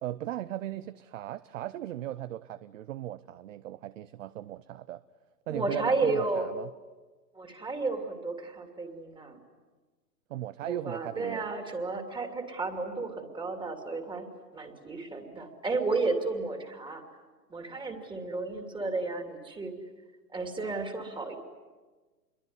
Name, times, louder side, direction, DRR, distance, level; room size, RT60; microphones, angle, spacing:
voice 1, 0.0-5.0 5.5-6.7 10.3-11.5, right 13 dB, 50° right, 16 dB, 0.8 m, -37 dB
voice 2, 5.5-6.5 7.3-9.4 10.6-14.3 14.5-17.0 17.5-19.7 20.3-21.4, right 3 dB, 10° right, 5 dB, 2.6 m, -32 dB
27.0 x 23.0 x 9.6 m, 1.3 s
hypercardioid pair, 130°, 49 cm